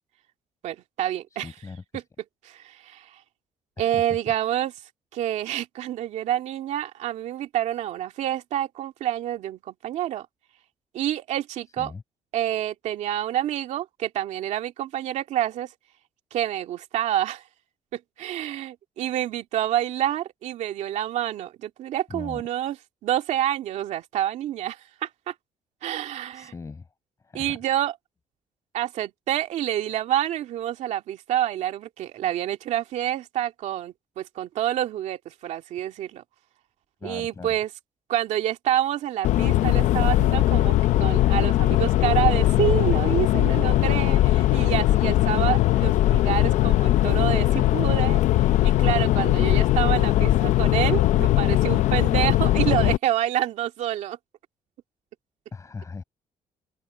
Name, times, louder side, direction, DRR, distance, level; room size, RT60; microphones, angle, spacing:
voice 1, 0.6-1.5 1.9-2.0 2.4-3.2 3.8-4.7 5.1-10.3 10.9-11.9 12.3-15.7 16.3-17.4 17.9-22.8 23.0-25.3 25.8-26.5 27.3-27.9 28.7-36.2 37.0-37.7 38.1-48.2 48.6-54.2, right 12 dB, 75° right, 2.3 m, -28 dB
voice 2, 1.3-2.0 3.8-4.2 11.8-12.0 22.1-22.4 26.3-26.9 27.2-27.6 37.0-37.5 50.2-50.4 55.5-56.0, left 4 dB, 25° left, 7.9 m, -39 dB
sound 1, 39.2-53.0, left 14 dB, 85° left, 0.8 m, -20 dB
open air
cardioid pair, 135°, 12 cm